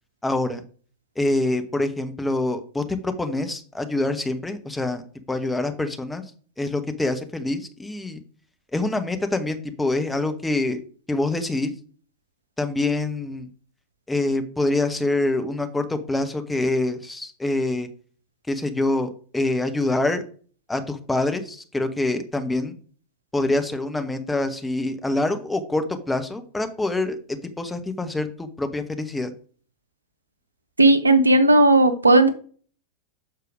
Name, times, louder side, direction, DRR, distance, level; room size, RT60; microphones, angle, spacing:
voice 1, 0.2-0.6 1.2-5.0 5.3-6.2 6.6-8.2 8.7-10.8 11.1-11.7 12.6-13.5 14.1-17.9 18.5-20.2 20.7-22.8 23.3-29.3, left 2 dB, 10° left, 7 dB, 1.0 m, -25 dB
voice 2, 30.8-32.3, right 2 dB, 80° right, 9 dB, 0.8 m, -15 dB
6.7 x 4.7 x 5.0 m, 0.43 s
figure-of-eight pair, 90°, 0 cm